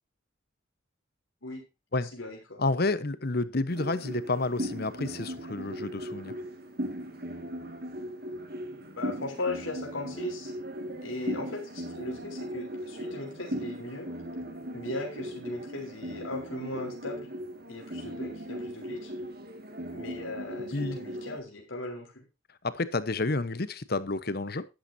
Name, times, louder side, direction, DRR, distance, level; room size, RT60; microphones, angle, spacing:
voice 1, 2.0-2.6 9.0-10.5 11.0-14.1 14.7-17.3 17.7-19.1 19.9-22.2, left 2 dB, 80° left, 4.0 m, -38 dB
voice 2, 2.6-6.3 20.7-21.0 22.6-24.7, left 3 dB, 50° left, 1.0 m, -30 dB
sound 1, 3.7-21.4, equal, 50° right, 2.0 m, -38 dB
11.5 x 11.5 x 2.7 m
head